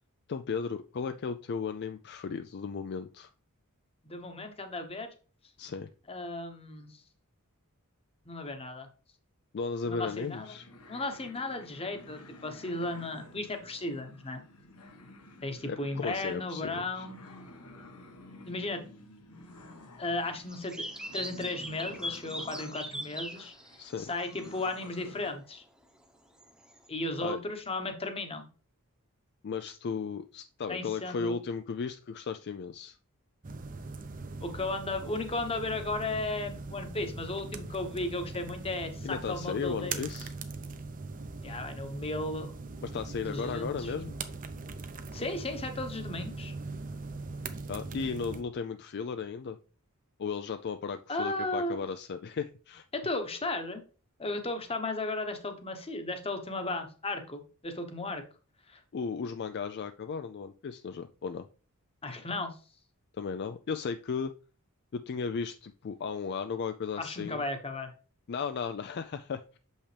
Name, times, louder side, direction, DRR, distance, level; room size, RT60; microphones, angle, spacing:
voice 1, 0.3-3.3 5.6-5.9 9.5-10.7 15.7-17.1 23.8-24.1 27.2-27.4 29.4-33.0 39.0-40.3 42.8-44.1 47.7-49.6 50.2-52.9 58.9-61.5 63.2-64.3 64.9-67.4 68.3-69.4, left 5 dB, 50° left, 9 dB, 0.4 m, -35 dB
voice 2, 4.0-5.1 6.1-6.9 8.3-8.9 9.8-10.5 10.9-14.4 15.4-17.2 18.5-18.8 20.0-20.8 21.1-23.5 24.1-25.6 26.9-28.5 30.7-31.4 34.4-40.0 41.4-42.5 43.2-43.9 45.1-46.5 51.1-51.8 52.9-53.8 54.2-58.2 58.7-58.8 62.0-62.6 67.0-67.9, left 2 dB, 25° left, 7 dB, 1.0 m, -35 dB
sound 1, 10.0-25.3, left 1 dB, 80° left, 1.5 m, -51 dB
sound 2, 20.5-24.8 26.4-26.9, equal, 5° right, 0.9 m, -40 dB
sound 3, 33.4-48.4, right 3 dB, 40° right, 0.7 m, -41 dB
7.2 x 5.4 x 3.3 m, 0.37 s
head